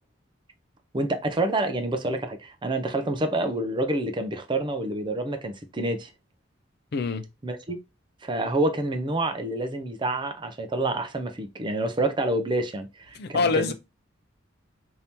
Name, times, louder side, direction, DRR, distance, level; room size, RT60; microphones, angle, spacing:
voice 1, 0.9-6.1 7.4-7.8 8.2-13.7, right 2 dB, 25° right, 0.5 m, -28 dB
voice 2, 6.9-7.3 13.1-13.7, left 4 dB, 55° left, 0.4 m, -25 dB
2.8 x 2.7 x 3.4 m
head